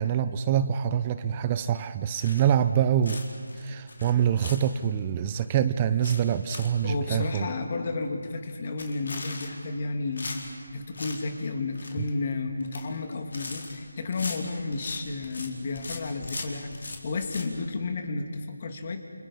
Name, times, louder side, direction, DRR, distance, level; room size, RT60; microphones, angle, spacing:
voice 1, 0.0-3.2 3.6-7.5 12.0-12.1, right 9 dB, 20° right, 12 dB, 0.6 m, -25 dB
sound 1, 2.2-2.7 3.0-5.0 5.4-5.5 5.8-6.8 7.1-7.2 7.6-7.7 7.9-8.2 8.7-9.8 10.2-11.2 11.5-12.1 12.5-12.9 13.1-15.5 15.7-17.5, left 3 dB, 65° left, 4.2 m, -39 dB
voice 2, 6.8-19.0, left 3 dB, 40° left, 5 dB, 2.3 m, -32 dB
29.0 x 29.0 x 5.6 m, 2.2 s
figure-of-eight pair, 165°, 0 cm